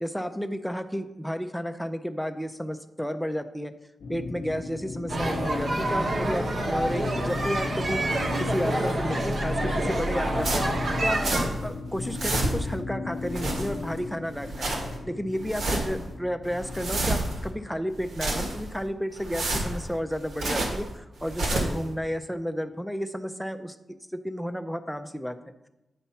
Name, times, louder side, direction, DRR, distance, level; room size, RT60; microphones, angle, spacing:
voice 1, 0.0-3.7 4.1-11.2 11.6-25.4, equal, ahead, 9 dB, 0.4 m, -32 dB
sound 1, 4.0-18.2, left 3 dB, 55° left, 0.5 m, -36 dB
sound 2, 5.1-11.5, right 1 dB, 50° right, 0.9 m, -28 dB
sound 3, 10.4-11.7 12.0-12.8 13.2-14.0 14.3-15.0 15.4-16.0 16.4-17.5 17.9-18.8 19.2-20.9 21.2-21.8, right 2 dB, 80° right, 1.6 m, -30 dB
9.1 x 4.3 x 5.6 m, 0.99 s
wide cardioid pair, 170°, 0 cm